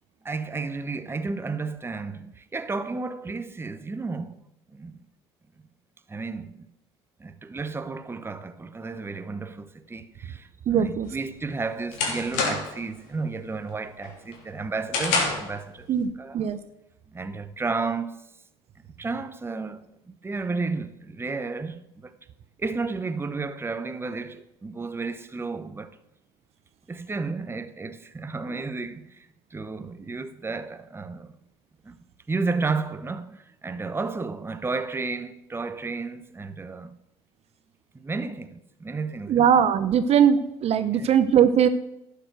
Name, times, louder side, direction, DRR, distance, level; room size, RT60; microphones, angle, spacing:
voice 1, 0.2-4.4 4.7-5.0 6.1-6.7 7.2-15.9 16.2-16.5 17.1-18.2 19.0-22.1 22.6-25.9 26.9-29.3 29.5-31.3 31.8-31.9 32.3-37.0 37.9-39.4 40.9-41.1, right 4 dB, 15° right, 0.9 m, -32 dB
voice 2, 10.7-11.1 15.9-16.6 39.3-41.7, right 8 dB, 45° right, 0.8 m, -20 dB
sound 1, 11.1-12.9 13.3-13.6 14.0-15.6, left 4 dB, 70° left, 3.0 m, -28 dB
11.5 x 6.8 x 6.5 m
hypercardioid pair, 70°, 14 cm